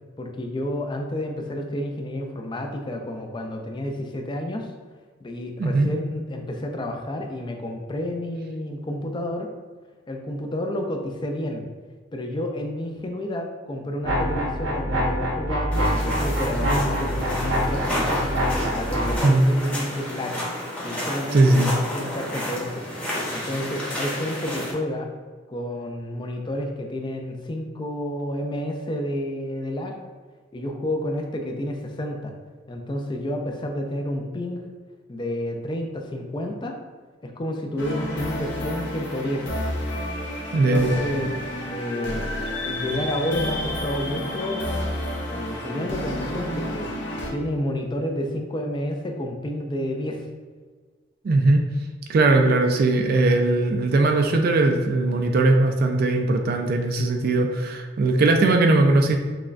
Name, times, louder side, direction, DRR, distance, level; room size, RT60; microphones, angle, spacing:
voice 1, 0.2-4.7 5.2-9.5 10.1-11.6 12.1-18.2 18.7-20.4 20.8-22.8 23.3-25.1 25.5-30.0 30.5-32.3 32.7-34.6 35.1-36.8 37.2-39.5 40.5-42.3 42.6-44.7 45.3-46.9 47.3-50.2, left 1 dB, 25° left, 3 dB, 0.4 m, -30 dB
sound 1, 14.0-19.2, equal, 85° right, 1.0 m, -25 dB
sound 2, 15.7-24.7, left 1 dB, 5° left, 0.8 m, -30 dB
voice 2, 21.3-21.7 40.5-41.0 51.2-51.6 52.1-59.2, right 2 dB, 50° right, 4 dB, 0.3 m, -19 dB
sound 3, 37.8-47.3, left 1 dB, 60° left, 0.7 m, -30 dB
5.9 x 2.2 x 2.5 m, 1.5 s
head